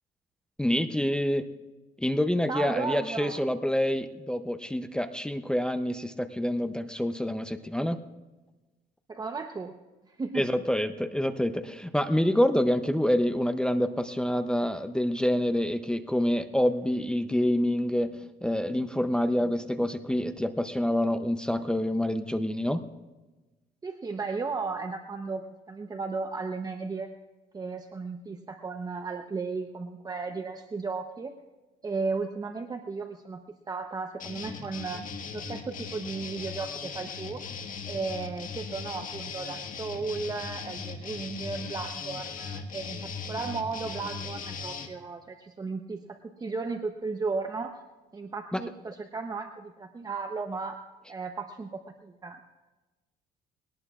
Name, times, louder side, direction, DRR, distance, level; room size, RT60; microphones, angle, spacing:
voice 1, 0.6-1.4 2.0-8.0 10.3-18.1 18.4-22.8 48.5-48.6, left 1 dB, 5° left, 9 dB, 0.6 m, -27 dB
voice 2, 2.5-3.4 9.1-9.7 10.1-10.6 23.8-27.1 27.5-31.3 31.8-33.4 33.7-35.0 35.3-37.4 37.9-47.8 48.1-50.8 51.1-52.4, right 4 dB, 20° right, 5 dB, 0.8 m, -35 dB
sound 1, 34.2-44.9, left 5 dB, 55° left, 1.6 m, -38 dB
22.0 x 18.0 x 2.4 m, 1.2 s
cardioid pair, 110°, 17 cm